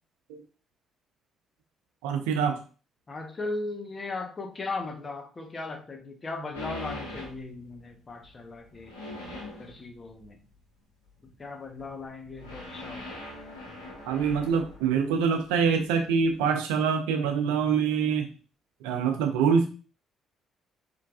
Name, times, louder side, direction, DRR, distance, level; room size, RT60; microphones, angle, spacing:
voice 1, 2.0-2.6 14.1-18.3 18.8-19.7, right 6 dB, 70° right, 6 dB, 0.6 m, -25 dB
voice 2, 3.1-8.9 9.6-10.4 11.4-13.2, left 3 dB, 30° left, 4 dB, 0.9 m, -37 dB
sound 1, 6.5-7.8 8.2-10.5 11.1-11.5 11.8-15.5 15.8-16.3, left 1 dB, 85° left, 1.1 m, -42 dB
4.6 x 3.2 x 2.4 m, 0.35 s
figure-of-eight pair, 45°, 0 cm